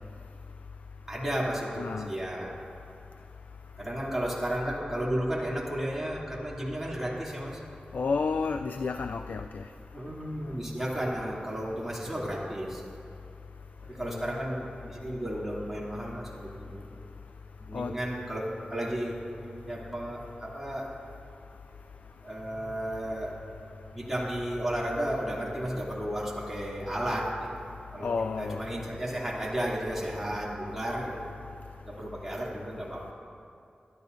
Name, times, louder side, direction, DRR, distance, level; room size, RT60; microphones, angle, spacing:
voice 1, 1.1-2.5 3.8-7.6 9.9-12.9 13.8-17.0 17.6-20.9 22.2-23.4 23.9-27.5 27.9-28.1 28.4-31.3 31.8-33.1, right 1 dB, 5° right, -6 dB, 2.8 m, -33 dB
voice 2, 1.8-2.1 7.9-9.6 14.1-14.3 17.7-17.9 28.0-28.6, left 4 dB, 75° left, 7 dB, 0.3 m, -31 dB
22.5 x 11.5 x 2.7 m, 2.6 s
wide cardioid pair, 100°, 3 cm